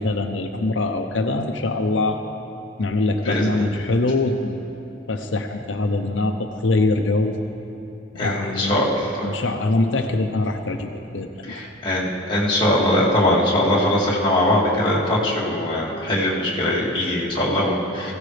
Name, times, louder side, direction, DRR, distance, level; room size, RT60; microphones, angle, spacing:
voice 1, 0.0-2.2 2.8-4.6 5.1-7.4 8.2-8.8 9.2-11.5, left 2 dB, 90° left, 4 dB, 0.7 m, -23 dB
voice 2, 3.2-3.6 8.2-9.3 11.5-18.1, left 1 dB, 25° left, -6 dB, 2.3 m, -21 dB
19.5 x 15.5 x 3.3 m, 2.8 s
head